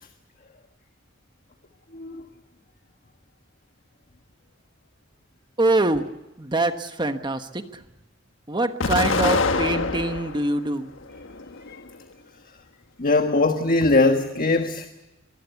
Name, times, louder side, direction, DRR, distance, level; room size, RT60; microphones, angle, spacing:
voice 1, 5.6-6.1 6.4-7.8 8.5-10.9, right 2 dB, 25° right, 1.2 m, -24 dB
Explosion, 8.8-10.4 11.0-11.9, left 3 dB, 80° left, 1.4 m, -25 dB
voice 2, 13.0-14.9, left 2 dB, 45° left, 1.4 m, -21 dB
24.0 x 20.5 x 8.2 m
head